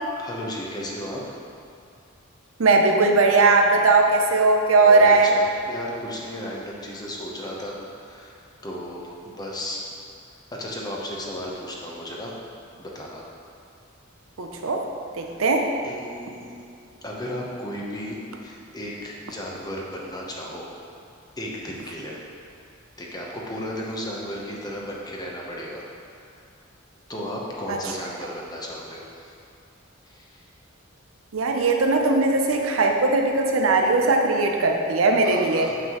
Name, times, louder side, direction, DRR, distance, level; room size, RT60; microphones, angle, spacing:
voice 1, 0.2-1.4 4.8-8.4 8.6-9.8 10.5-12.3 12.8-13.3 15.8-16.6 17.0-20.7 21.4-22.2 23.0-25.8 27.1-29.3 30.1-30.4 35.2-35.8, equal, 20° left, -3 dB, 0.9 m, -34 dB
voice 2, 2.6-5.3 14.4-14.9 15.1-15.7 27.7-27.8 31.3-35.7, right 3 dB, 85° right, 2 dB, 0.6 m, -19 dB
7.5 x 5.9 x 3.0 m, 2.4 s
head